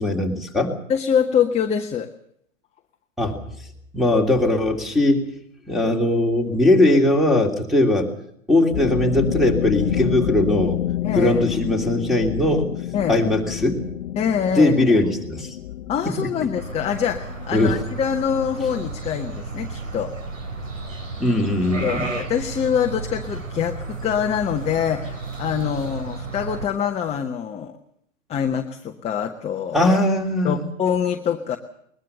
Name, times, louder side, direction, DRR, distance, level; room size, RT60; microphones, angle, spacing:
voice 1, 0.0-0.7 3.2-3.4 3.9-5.2 5.7-8.1 8.5-10.8 11.2-12.7 13.1-13.8 14.5-15.5 17.5-17.7 21.2-22.1 29.7-30.6, left 1 dB, ahead, 4 dB, 3.1 m, -19 dB
voice 2, 0.9-2.1 11.0-11.4 12.9-13.2 14.2-14.7 15.9-20.1 21.8-27.7 28.3-29.9 30.4-31.6, left 8 dB, 15° left, 4 dB, 1.1 m, -24 dB
sound 1, 8.7-19.0, left 12 dB, 45° left, 1.0 m, -28 dB
sound 2, 16.6-26.7, right 3 dB, 75° right, 3.2 m, -33 dB
21.5 x 21.0 x 6.9 m, 0.71 s
figure-of-eight pair, 105°, 39 cm